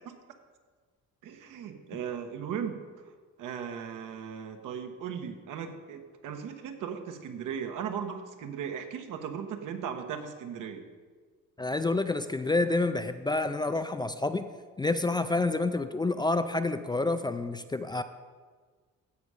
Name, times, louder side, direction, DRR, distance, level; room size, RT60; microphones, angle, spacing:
voice 1, 1.2-2.8 3.4-10.8, right 7 dB, 75° right, 6 dB, 1.2 m, -37 dB
voice 2, 11.6-14.5 14.8-18.0, left 2 dB, 15° left, 9 dB, 0.4 m, -28 dB
15.5 x 5.5 x 4.9 m, 1.5 s
cardioid pair, 100°, 32 cm